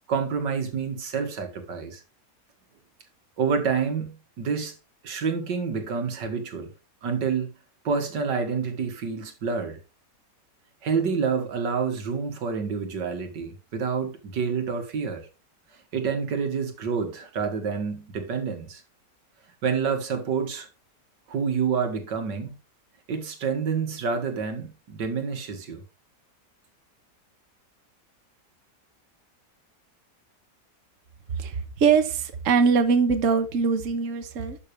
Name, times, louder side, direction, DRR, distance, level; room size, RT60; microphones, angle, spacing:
voice 1, 0.1-2.0 3.4-4.7 5.0-6.7 7.0-7.5 7.8-9.8 10.8-15.3 15.9-18.8 19.6-20.7 21.3-22.6 23.1-25.8, right 5 dB, 85° right, 2.3 m, -28 dB
voice 2, 31.3-34.6, right 5 dB, 50° right, 1.4 m, -22 dB
11.5 x 6.6 x 3.4 m
omnidirectional pair, 1.9 m